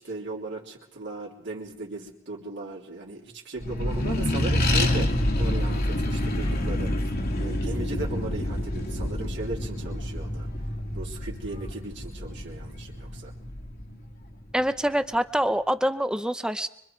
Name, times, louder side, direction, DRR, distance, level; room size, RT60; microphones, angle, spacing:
voice 1, 0.0-10.5 10.9-13.3, right 2 dB, 65° right, -2 dB, 3.3 m, -37 dB
Accelerating revving vroom, 3.6-14.5, left 1 dB, 50° left, 2.4 m, -28 dB
voice 2, 14.5-16.7, equal, 5° right, 11 dB, 0.8 m, -25 dB
25.0 x 23.5 x 4.6 m, 0.77 s
head